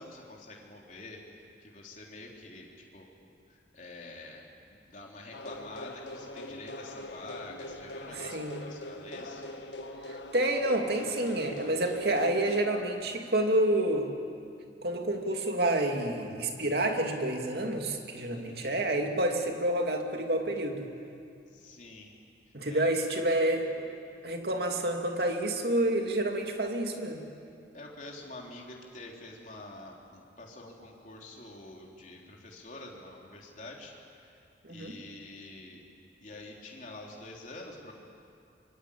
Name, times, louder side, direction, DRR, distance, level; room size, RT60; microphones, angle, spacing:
voice 1, 0.0-4.4 4.7-9.4 18.3-18.8 21.5-22.1 22.7-22.9 27.7-34.3 34.7-35.8 36.2-37.9, left 2 dB, 45° left, -1 dB, 3.7 m, -47 dB
sound 1, 5.3-12.7, left 1 dB, 80° left, 1.6 m, -42 dB
voice 2, 8.1-8.6 10.1-14.1 14.8-20.9 22.5-23.8 24.2-27.2 34.6-35.0, right 1 dB, 60° right, 3 dB, 2.6 m, -29 dB
25.0 x 24.5 x 8.6 m, 2.5 s
head